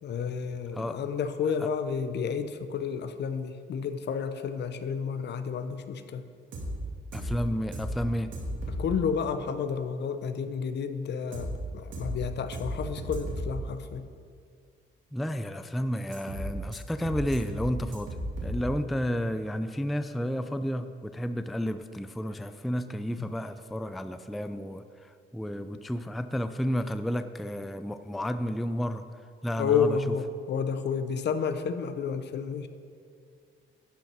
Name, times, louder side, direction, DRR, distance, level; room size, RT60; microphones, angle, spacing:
voice 1, 0.0-6.2 8.8-14.0 23.2-23.3 29.6-32.7, left 6 dB, 60° left, 10 dB, 0.7 m, -31 dB
sound 1, 6.5-6.7 7.1-7.3 7.7-7.9 8.3-8.8 11.3-11.5 11.9-12.1 12.5-12.7 13.0-13.4 16.1-16.4 16.7-16.8 17.0-17.6 17.9-18.5, equal, 75° right, 2.3 m, -35 dB
voice 2, 7.1-8.3 15.1-18.1 18.4-29.0 29.4-30.0, equal, ahead, 10 dB, 0.3 m, -31 dB
11.5 x 5.5 x 4.5 m, 2.2 s
cardioid pair, 90°, 20 cm